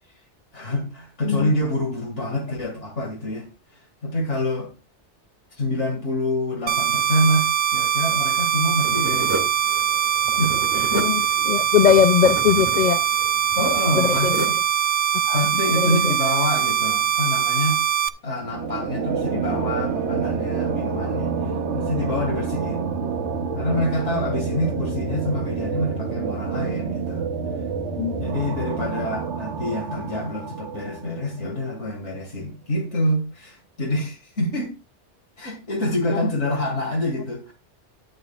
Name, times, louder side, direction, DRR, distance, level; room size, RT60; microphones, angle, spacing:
voice 1, 0.5-3.5 4.0-4.7 5.5-9.5 10.4-11.3 11.6-11.7 13.6-14.5 14.8-14.9 15.3-17.8 18.2-22.9 23.5-27.2 28.2-34.7 35.4-37.5, left 1 dB, 80° left, 2.6 m, -27 dB
sound 1, 6.7-18.1, right 9 dB, 50° right, 0.6 m, -22 dB
sound 2, 8.8-14.7, right 2 dB, 15° right, 1.9 m, -33 dB
voice 2, 10.9-13.0 13.9-14.4 15.3-15.4 15.7-16.1 28.0-28.1 36.1-36.2, left 8 dB, 55° left, 0.5 m, -20 dB
sound 3, 18.4-31.6, right 5 dB, 75° right, 1.2 m, -28 dB
11.5 x 9.1 x 2.4 m
omnidirectional pair, 1.2 m